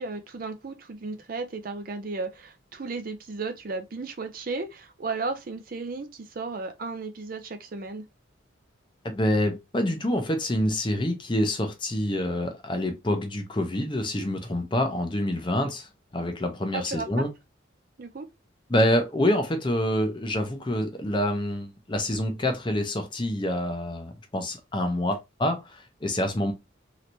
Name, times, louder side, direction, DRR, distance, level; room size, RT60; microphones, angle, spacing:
voice 1, 0.0-8.0 16.7-17.1 18.0-18.3, right 3 dB, 45° right, 0.5 m, -34 dB
voice 2, 9.0-17.3 18.7-26.5, left 1 dB, 25° left, 0.6 m, -27 dB
3.2 x 2.9 x 2.7 m
head